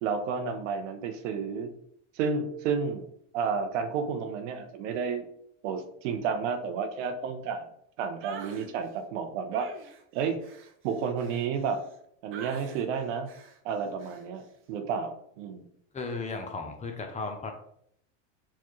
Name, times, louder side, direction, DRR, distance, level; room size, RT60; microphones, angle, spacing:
voice 1, 0.0-1.7 2.1-3.1 3.3-5.3 5.6-7.6 8.0-9.7 10.1-10.4 10.8-11.8 12.2-13.3 13.6-15.6, right 6 dB, 80° right, 8 dB, 0.7 m, -31 dB
sound 1, 8.2-8.7 9.5-12.0 12.3-12.9 13.3-13.6 14.0-14.3, right 6 dB, 35° right, 0.6 m, -46 dB
voice 2, 15.9-17.5, left 3 dB, 20° left, 4 dB, 0.5 m, -35 dB
4.6 x 2.3 x 3.0 m, 0.70 s
supercardioid pair, 105°, 36 cm